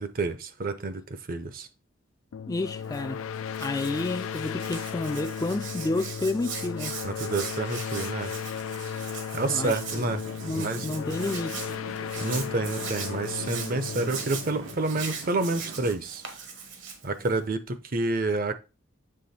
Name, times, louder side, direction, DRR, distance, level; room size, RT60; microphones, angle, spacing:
voice 1, 0.0-1.7 7.0-8.3 9.3-10.2 10.5-10.9 12.2-16.2 17.0-18.5, right 3 dB, 45° right, 0.7 m, -29 dB
sound 1, 2.3-15.7, left 7 dB, 90° left, 0.4 m, -36 dB
voice 2, 2.5-3.2 3.6-7.0 9.5-10.1 10.4-11.6, left 2 dB, 20° left, 0.3 m, -30 dB
Hands, 2.8-17.5, right 6 dB, 70° right, 1.3 m, -40 dB
sound 2, 9.9-15.9, right 2 dB, 90° right, 1.3 m, -43 dB
7.7 x 3.4 x 4.2 m
head